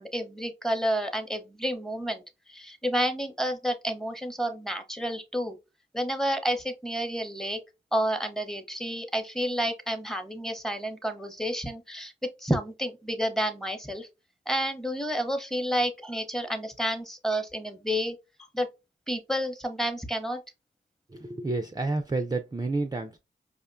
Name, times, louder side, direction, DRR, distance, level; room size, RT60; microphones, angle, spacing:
voice 1, 0.0-2.2 2.5-5.6 5.9-7.6 7.9-12.1 12.4-14.1 14.5-18.2 18.5-18.7 19.1-20.4, equal, ahead, 0.8 m, -30 dB
voice 2, 21.1-23.2, right 3 dB, 20° right, 0.4 m, -30 dB
5.0 x 2.1 x 2.4 m
cardioid pair, 45°, 20 cm